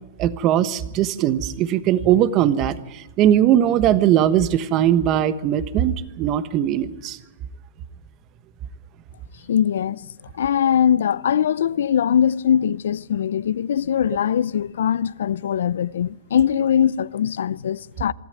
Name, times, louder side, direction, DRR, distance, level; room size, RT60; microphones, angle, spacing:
voice 1, 0.2-7.2, right 11 dB, 35° right, 1.2 m, -20 dB
voice 2, 9.5-10.1 10.3-18.1, left 9 dB, 75° left, 0.6 m, -21 dB
24.0 x 13.5 x 9.4 m
hypercardioid pair, 135°, 0 cm